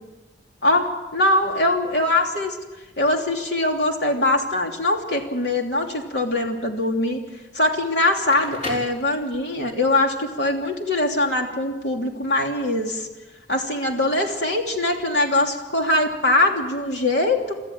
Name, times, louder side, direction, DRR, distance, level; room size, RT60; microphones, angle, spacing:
voice 1, 0.6-2.6 3.0-7.2 7.5-13.1 13.5-17.6, left 2 dB, 75° left, 2 dB, 3.1 m, -22 dB
Crackle, 8.1-9.7, left 2 dB, 45° left, 3.8 m, -35 dB
23.5 x 14.0 x 8.8 m, 1.2 s
head